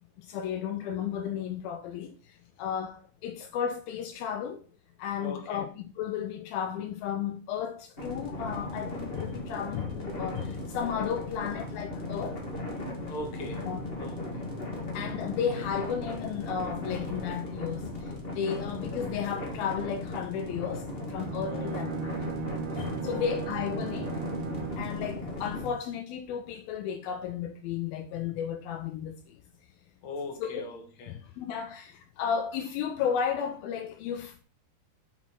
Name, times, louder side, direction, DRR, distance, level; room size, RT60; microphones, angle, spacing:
voice 1, 0.2-4.6 5.0-12.4 13.7-13.9 14.9-22.3 22.7-24.2 24.8-29.4 30.4-30.7 31.1-34.4, left 8 dB, 80° left, 2.5 m, -34 dB
voice 2, 5.2-5.6 13.1-13.7 14.0-14.4 21.5-21.8 23.0-23.5 30.0-31.2, left 3 dB, 55° left, 2.7 m, -39 dB
sound 1, 8.0-25.7, left 2 dB, 35° left, 0.8 m, -37 dB
Bowed string instrument, 21.1-25.0, right 6 dB, 90° right, 1.1 m, -37 dB
6.2 x 5.8 x 6.0 m
omnidirectional pair, 4.3 m